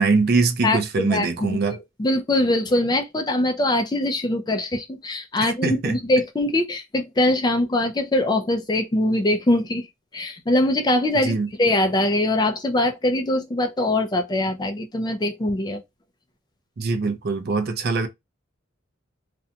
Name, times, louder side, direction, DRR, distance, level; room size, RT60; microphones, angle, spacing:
voice 1, 0.0-1.8 5.4-6.0 11.2-11.5 16.8-18.1, right 4 dB, 50° right, 0.4 m, -22 dB
voice 2, 0.6-9.9 10.1-15.8, left 1 dB, 20° left, 0.4 m, -22 dB
2.5 x 2.2 x 2.7 m
head